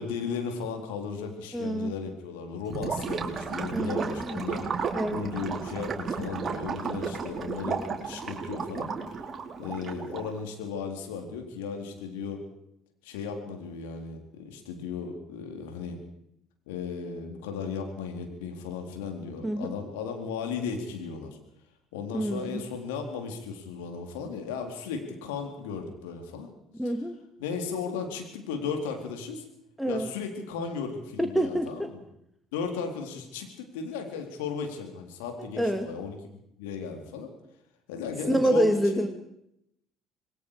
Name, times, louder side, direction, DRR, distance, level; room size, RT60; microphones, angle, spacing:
voice 1, 0.0-4.7 5.1-8.9 9.6-12.4 13.0-16.0 16.7-21.4 21.9-26.5 27.4-29.4 29.9-32.0 32.5-36.2 36.6-37.3 37.9-39.1, left 5 dB, 80° left, 4 dB, 4.1 m, -35 dB
voice 2, 1.5-1.9 3.7-4.4 4.9-5.3 19.4-19.7 22.1-22.6 26.8-27.1 29.8-30.1 31.2-31.9 35.6-35.9 38.3-39.1, equal, 5° right, 4 dB, 2.4 m, -27 dB
Gurgling / Liquid, 2.6-10.4, right 5 dB, 40° right, 4.0 m, -33 dB
27.0 x 21.0 x 5.1 m, 0.76 s
hypercardioid pair, 60°, 0 cm